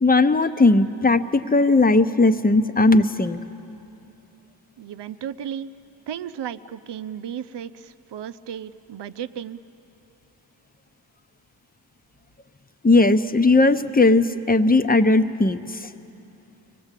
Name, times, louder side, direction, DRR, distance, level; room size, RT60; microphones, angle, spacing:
voice 1, 0.0-3.4 12.8-15.9, left 2 dB, 20° left, 10 dB, 0.8 m, -18 dB
voice 2, 4.8-5.7 6.1-9.6, right 9 dB, 70° right, 11 dB, 0.7 m, -34 dB
24.0 x 19.0 x 8.3 m, 2.8 s
cardioid pair, 60°, 43 cm